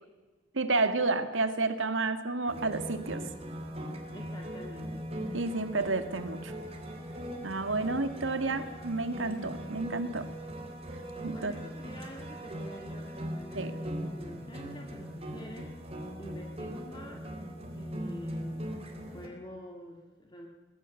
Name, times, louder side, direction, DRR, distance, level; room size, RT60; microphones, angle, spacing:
voice 1, 0.5-3.3 5.3-6.5 7.4-10.3 11.2-11.5 13.5-13.7, right 3 dB, 75° right, 9 dB, 1.9 m, -30 dB
sound 1, 2.5-19.3, equal, 30° right, 3.6 m, -40 dB
voice 2, 4.1-5.1 11.3-15.7 16.2-17.2 17.7-20.5, equal, 25° left, 1 dB, 2.1 m, -47 dB
23.0 x 20.0 x 7.1 m, 1.3 s
head